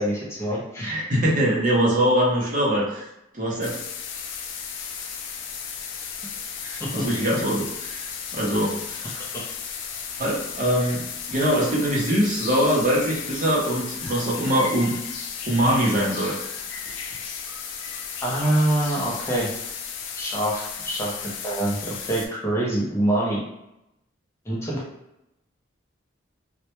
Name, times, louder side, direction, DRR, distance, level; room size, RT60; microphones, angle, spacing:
voice 1, 0.0-1.0 6.8-7.0 18.2-19.5 20.2-23.4 24.5-24.8, right 1 dB, 15° left, -5 dB, 0.5 m, -25 dB
voice 2, 0.8-3.0 3.3-3.7 6.6-9.2 10.2-14.9 15.5-16.4, equal, 40° right, -5 dB, 0.6 m, -23 dB
sound 1, 3.6-22.3, left 6 dB, 75° left, 0.3 m, -34 dB
2.1 x 2.1 x 2.9 m, 0.87 s
head